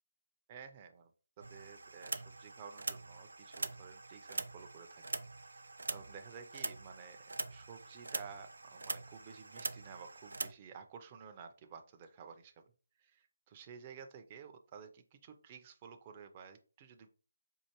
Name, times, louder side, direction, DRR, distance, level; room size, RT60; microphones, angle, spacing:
voice 1, 0.5-1.1 1.4-5.0 5.4-12.5 13.0-17.1, right 6 dB, 25° right, 5 dB, 0.5 m, -53 dB
sound 1, 1.4-10.5, right 3 dB, 80° right, 0.4 m, -43 dB
4.6 x 2.5 x 2.9 m, 0.37 s
figure-of-eight pair, 155°, 0 cm